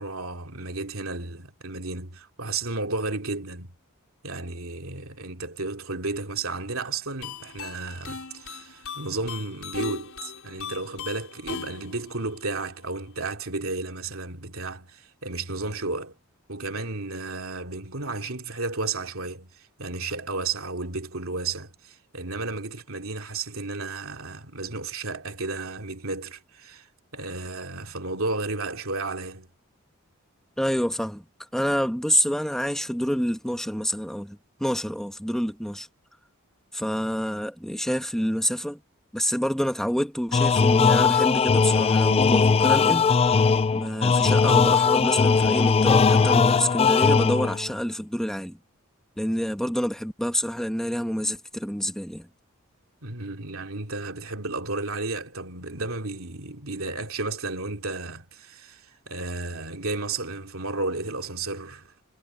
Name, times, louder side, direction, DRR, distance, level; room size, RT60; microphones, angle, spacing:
voice 1, 0.0-3.7 4.2-16.1 16.5-26.9 27.1-29.5 53.0-61.9, right 3 dB, 75° right, 3.0 m, -33 dB
sound 1, 7.2-13.1, left 5 dB, 85° left, 3.3 m, -38 dB
voice 2, 30.6-31.2 31.5-35.9 36.7-38.8 39.1-43.1 43.7-48.6 49.2-52.3, equal, ahead, 1.3 m, -27 dB
sound 2, 40.3-47.7, left 5 dB, 30° left, 0.4 m, -19 dB
head